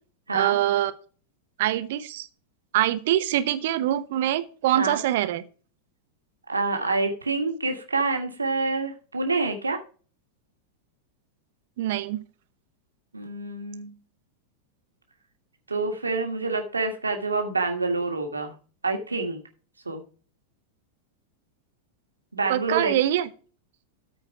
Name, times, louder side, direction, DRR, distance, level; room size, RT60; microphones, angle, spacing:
voice 1, 0.3-0.9 1.6-2.3 2.7-5.4 11.8-12.2 22.5-23.3, right 13 dB, 55° right, 12 dB, 0.9 m, -24 dB
voice 2, 6.5-9.8 13.1-14.0 15.7-18.5 18.8-19.4 19.8-20.0 22.3-22.9, right 3 dB, 80° right, 4 dB, 1.5 m, -27 dB
13.5 x 4.5 x 4.7 m, 0.38 s
figure-of-eight pair, 90°, 0 cm